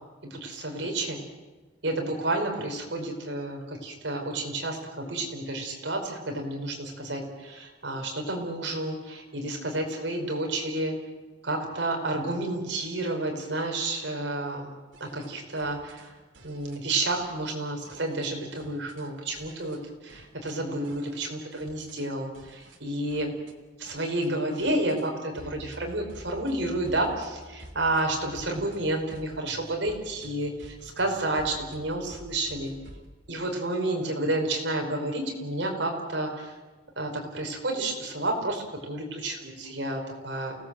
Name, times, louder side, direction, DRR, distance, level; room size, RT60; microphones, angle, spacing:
voice 1, 0.2-1.2 1.8-10.9 11.4-14.7 15.0-16.1 16.4-23.3 23.8-32.7 33.3-36.6 37.0-40.6, right 2 dB, 70° right, 2 dB, 5.0 m, -30 dB
sound 1, 14.9-16.1 16.3-16.8 17.1-17.5 17.8-19.1 19.3-19.8 20.1-20.5 20.8-22.1 22.3-22.8 23.1-23.5 23.8-25.1 25.3-33.1, right 1 dB, 85° right, 2.9 m, -49 dB
29.0 x 18.5 x 7.6 m, 1.3 s
head